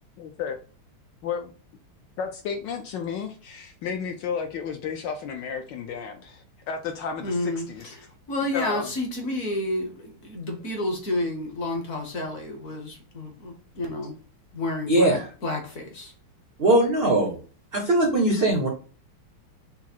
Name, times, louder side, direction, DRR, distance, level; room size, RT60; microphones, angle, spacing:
voice 1, 0.2-0.6 1.2-1.5 2.2-8.0 8.5-8.9, left 6 dB, 75° left, 1.1 m, -32 dB
voice 2, 7.2-14.1 14.5-16.1, left 1 dB, 55° left, 1.0 m, -30 dB
voice 3, 14.9-15.2 16.6-17.4 17.7-18.7, right 1 dB, 70° right, 0.5 m, -20 dB
5.9 x 2.0 x 4.2 m
omnidirectional pair, 2.3 m